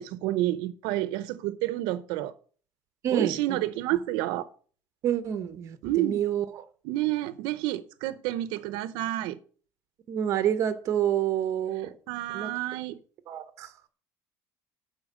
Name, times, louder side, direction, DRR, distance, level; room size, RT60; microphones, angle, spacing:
voice 1, 0.0-2.3 3.1-4.5 5.8-6.2 6.8-9.4 12.1-13.0, right 15 dB, 85° right, 0.7 m, -29 dB
voice 2, 3.0-3.6 5.0-6.6 10.1-11.9 12.3-12.5 13.3-13.9, right 10 dB, 40° right, 1.0 m, -28 dB
12.0 x 4.5 x 7.4 m
cardioid pair, 175°, 8 cm